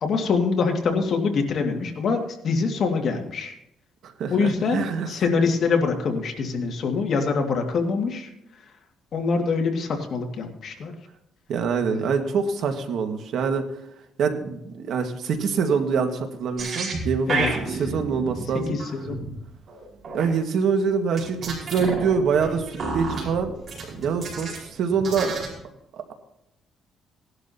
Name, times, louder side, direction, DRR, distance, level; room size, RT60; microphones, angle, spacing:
voice 1, 0.0-3.6 4.3-8.3 9.1-10.9 11.9-12.0 17.3-17.8 18.7-19.2, left 4 dB, 50° left, 3 dB, 2.1 m, -24 dB
voice 2, 4.0-5.1 11.5-13.6 14.2-17.5 17.8-18.8 20.1-23.5 23.9-25.4, right 5 dB, 70° right, 5 dB, 1.7 m, -25 dB
sound 1, 16.6-20.3 21.2-24.7 24.9-25.6, right 3 dB, 45° right, 4.8 m, -31 dB
18.5 x 11.5 x 2.9 m, 0.81 s
cardioid pair, 120°, 0 cm